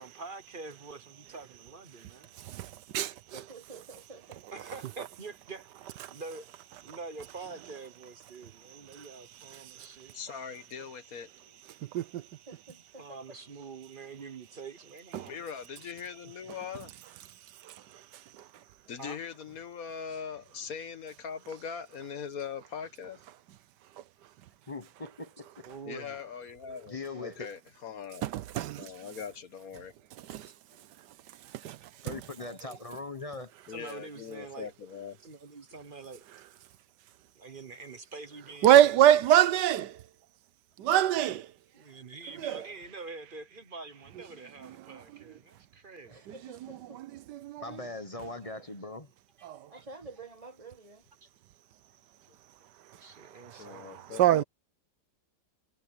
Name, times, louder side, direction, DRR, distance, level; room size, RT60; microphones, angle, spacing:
voice 1, 0.0-2.3 4.5-5.7 6.1-6.5 6.8-10.2 13.0-15.5 19.0-19.2 20.1-20.2 25.6-26.2 33.7-34.7 35.2-36.2 37.4-38.8 41.7-46.1 49.4-49.8 51.2-51.3 53.0-54.3, right 4 dB, 35° right, 0.9 m, -46 dB
voice 2, 2.3-3.5 6.0-6.2 6.9-7.0 8.7-9.1 9.5-10.2 11.7-12.3 15.1-15.3 17.5-18.6 24.0-24.1 28.2-29.0 30.2-30.5 31.0-31.1 31.4-32.2 38.6-40.1 40.8-41.5 42.3-42.7 44.6-45.3 46.3-47.8 49.4-49.7 52.8-54.4, right 11 dB, 70° right, 1.2 m, -27 dB
voice 3, 3.3-4.4 12.5-13.0 32.4-32.7 46.0-47.0 49.7-51.0, right 3 dB, 20° right, 1.6 m, -49 dB
voice 4, 10.1-11.6 15.3-16.9 18.9-23.2 25.9-28.3 28.8-29.9 33.7-35.2 53.6-54.4, left 6 dB, 55° left, 1.5 m, -41 dB
voice 5, 24.7-25.7 26.9-27.5 32.0-33.5 47.6-49.1, left 3 dB, 25° left, 0.8 m, -40 dB
omnidirectional pair, 2.0 m